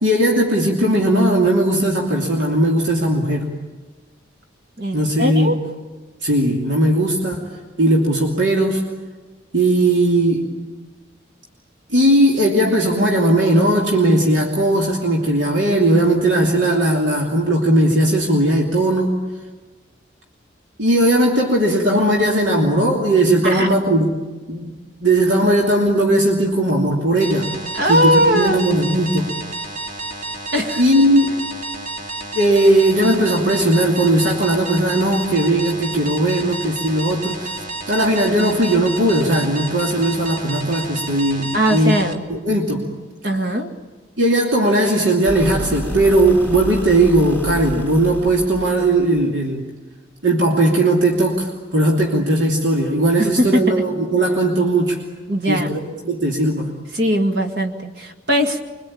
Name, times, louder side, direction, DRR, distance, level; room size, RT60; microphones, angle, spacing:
voice 1, 0.0-3.5 4.9-5.6 6.2-7.5 7.8-8.8 9.5-10.5 11.9-19.1 20.8-24.1 24.5-27.5 27.9-29.3 30.8-31.4 32.3-41.9 42.3-42.8 44.2-49.6 50.2-55.0 55.5-55.8 56.0-56.7, right 1 dB, 80° right, -1 dB, 3.0 m, -17 dB
voice 2, 4.8-5.6 23.4-23.7 27.7-28.6 30.5-30.8 41.5-42.2 43.2-43.7 53.2-53.8 55.3-55.8 56.9-58.7, equal, 60° right, 4 dB, 2.3 m, -19 dB
sound 1, 27.2-42.1, right 3 dB, 45° right, 2.6 m, -31 dB
sound 2, 45.3-49.2, equal, 10° right, 5.0 m, -30 dB
25.5 x 23.5 x 8.8 m, 1.3 s
head